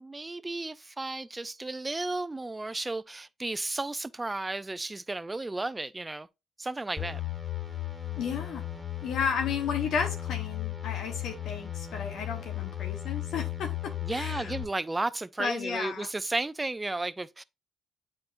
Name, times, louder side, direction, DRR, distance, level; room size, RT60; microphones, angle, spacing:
voice 1, 0.0-6.3 6.6-7.2 14.0-17.4, right 2 dB, 20° right, 0.4 m, -33 dB
sound 1, 7.0-14.6, left 13 dB, 10° left, 2.0 m, -35 dB
voice 2, 8.2-8.6 9.0-14.5 15.4-16.1, left 6 dB, 70° left, 1.0 m, -33 dB
8.5 x 4.4 x 2.5 m
supercardioid pair, 65°, 0 cm